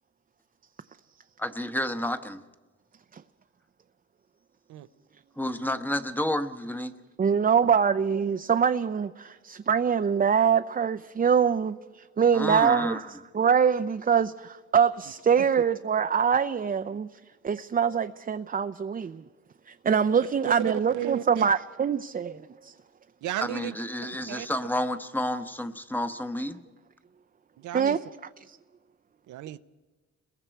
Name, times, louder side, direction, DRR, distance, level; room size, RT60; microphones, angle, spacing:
voice 1, 1.4-2.4 5.4-6.9 12.3-13.0 23.4-26.6, left 1 dB, 5° left, 1.0 m, -30 dB
voice 2, 7.2-17.1 17.4-19.2 19.7-22.7 27.7-28.0, right 7 dB, 30° right, 0.6 m, -24 dB
voice 3, 20.4-21.4 23.2-23.8 24.3-24.5 27.6-28.0 29.3-29.6, right 13 dB, 80° right, 0.7 m, -33 dB
30.0 x 21.5 x 4.6 m
cardioid pair, 90°, 30 cm